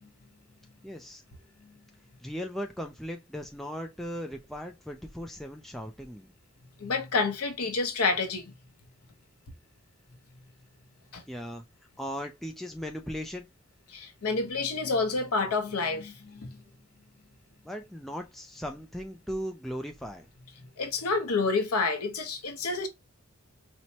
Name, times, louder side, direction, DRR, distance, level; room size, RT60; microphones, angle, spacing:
voice 1, 0.8-1.2 2.2-6.3 11.3-11.6 12.0-13.5 17.6-20.3, equal, ahead, 0.3 m, -37 dB
voice 2, 6.8-8.5 11.1-11.2 13.9-16.6 20.8-22.9, left 4 dB, 90° left, 0.7 m, -29 dB
4.3 x 2.1 x 2.7 m
head